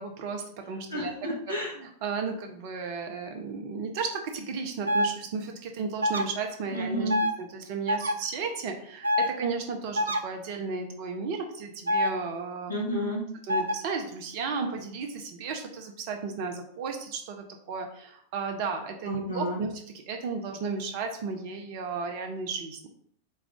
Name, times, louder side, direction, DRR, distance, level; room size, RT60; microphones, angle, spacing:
voice 1, 0.0-1.1 1.8-7.1 7.4-12.7 13.5-19.7 20.1-22.9, right 5 dB, 45° right, 4 dB, 0.7 m, -34 dB
voice 2, 0.9-1.8 6.7-7.2 12.7-13.2 19.0-19.6, equal, 80° left, -4 dB, 1.2 m, -31 dB
sound 1, 4.8-5.1 6.0-6.2 7.1-7.3 7.9-8.1 9.0-9.3 9.9-10.2 11.9-12.1 13.5-13.7, left 1 dB, 80° right, 0.4 m, -25 dB
4.2 x 2.4 x 3.6 m, 0.64 s
figure-of-eight pair, 90°, 0 cm